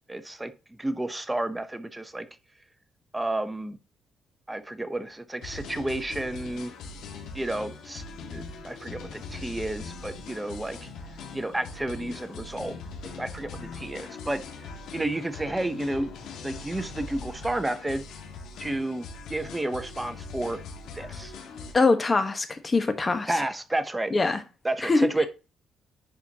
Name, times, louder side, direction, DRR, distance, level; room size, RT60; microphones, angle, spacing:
voice 1, 0.1-0.5 0.8-2.3 3.1-3.8 4.5-6.7 7.3-8.0 8.3-10.9 11.3-12.8 13.2-14.4 14.9-16.1 16.4-18.0 18.6-20.6 20.9-21.3 23.3-24.1 24.6-25.3, right 1 dB, 10° right, 0.9 m, -31 dB
sound 1, 5.4-21.7, left 4 dB, 85° left, 1.9 m, -41 dB
voice 2, 21.7-23.4 24.1-24.4 24.8-25.3, left 3 dB, 30° left, 1.2 m, -23 dB
10.5 x 4.4 x 2.9 m
cardioid pair, 90°, 0 cm